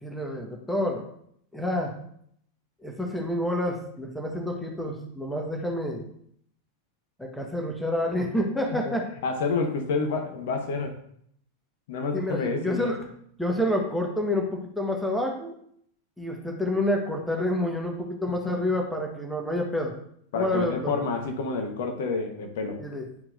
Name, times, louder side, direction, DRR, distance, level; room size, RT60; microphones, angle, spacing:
voice 1, 0.0-1.1 1.5-1.9 2.8-6.1 7.2-9.1 12.1-13.0 13.4-15.5 16.2-19.9 20.3-20.9 22.8-23.1, left 1 dB, 5° left, 1 dB, 1.2 m, -28 dB
voice 2, 9.2-11.0 11.9-12.9 20.3-22.8, left 4 dB, 55° left, 4 dB, 1.1 m, -28 dB
10.5 x 4.4 x 2.5 m, 0.68 s
figure-of-eight pair, 90°, 0 cm